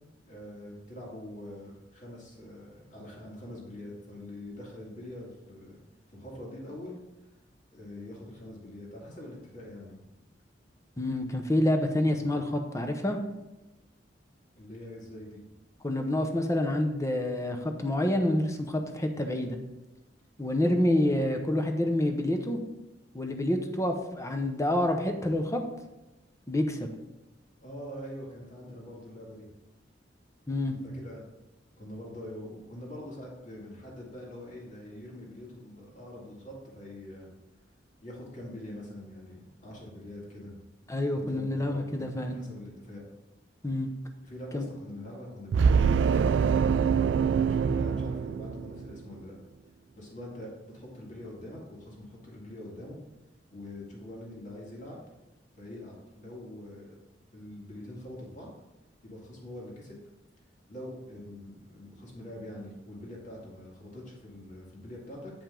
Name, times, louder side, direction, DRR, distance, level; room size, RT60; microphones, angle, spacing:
voice 1, 0.3-5.8 6.1-6.9 7.7-10.0 14.6-15.4 27.6-29.5 30.6-31.2 31.8-37.3 38.0-40.5 41.1-43.0 44.3-49.3 50.0-53.0 53.5-55.0 55.6-56.9 57.3-58.5 59.0-59.9 60.7-65.3, left 1 dB, 45° left, -3 dB, 2.2 m, -44 dB
voice 2, 11.0-13.2 15.8-19.6 20.4-22.6 23.1-25.6 26.5-26.9 30.5-30.8 40.9-42.4 43.6-43.9 44.5-44.7, left 1 dB, 15° left, 5 dB, 0.8 m, -28 dB
sound 1, 45.5-49.0, right 6 dB, 85° right, 0.3 m, -24 dB
8.9 x 5.2 x 3.8 m, 0.99 s
head